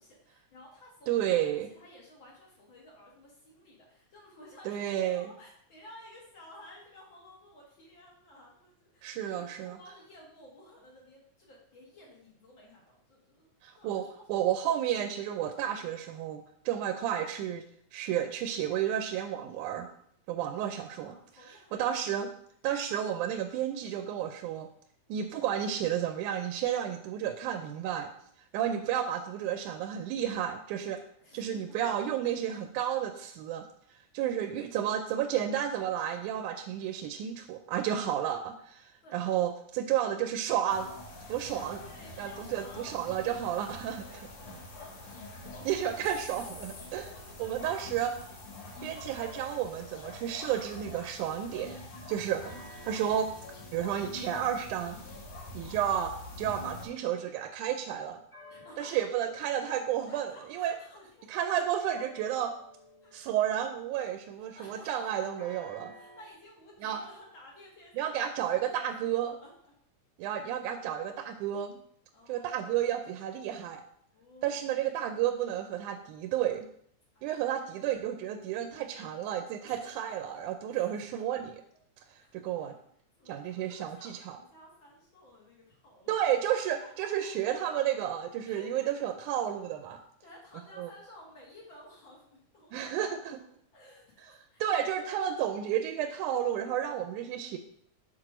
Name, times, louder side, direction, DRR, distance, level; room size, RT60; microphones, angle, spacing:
voice 1, 0.0-14.3 20.9-21.8 31.2-31.8 39.0-39.2 41.5-45.4 47.0-47.7 52.7-52.8 58.5-59.0 59.8-61.3 63.0-63.1 64.4-65.3 65.9-68.2 68.5-69.7 72.1-72.8 74.1-74.8 77.1-77.4 79.6-80.4 80.7-81.0 82.2-82.4 83.2-86.1 86.6-87.3 88.4-89.0 90.2-92.9 93.2-94.7 95.0-95.1, left 1 dB, 45° left, -3 dB, 2.3 m, -54 dB
voice 2, 1.1-1.7 4.7-5.3 9.0-9.8 13.6-14.0 14.3-17.6 17.9-19.9 20.3-22.3 22.6-24.7 25.1-28.1 28.5-31.0 31.3-33.7 34.1-40.9 41.3-41.8 42.2-44.0 45.6-47.1 47.4-48.1 48.8-51.8 52.1-52.4 52.8-53.3 53.7-55.0 55.5-58.2 58.8-60.8 61.3-62.5 63.1-65.9 66.8-67.0 68.0-69.4 70.2-71.8 72.3-73.8 74.4-76.7 77.2-81.6 82.3-82.7 83.3-84.4 86.1-90.0 90.8-90.9 92.7-93.4 94.6-97.6, right 10 dB, 85° right, 6 dB, 2.0 m, -32 dB
sound 1, 40.7-56.9, left 2 dB, 85° left, 3.4 m, -45 dB
sound 2, 46.7-51.6 52.4-57.3 58.3-60.7 61.8-64.3 65.4-66.3, left 1 dB, 15° left, 1.0 m, -55 dB
6.7 x 4.4 x 6.0 m, 0.65 s
omnidirectional pair, 3.5 m